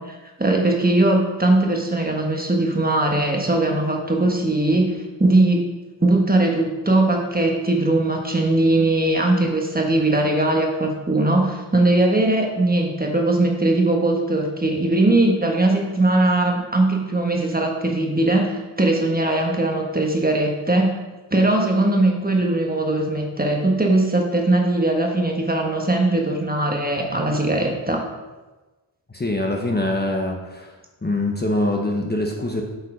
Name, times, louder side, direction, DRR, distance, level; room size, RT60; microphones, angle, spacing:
voice 1, 0.0-5.6 6.0-21.0 21.3-28.1, right 2 dB, 20° right, 1 dB, 1.3 m, -20 dB
voice 2, 29.1-30.7 31.0-32.6, left 1 dB, 20° left, 0 dB, 1.0 m, -24 dB
8.0 x 5.5 x 5.0 m, 1.2 s
wide cardioid pair, 85°, 45 cm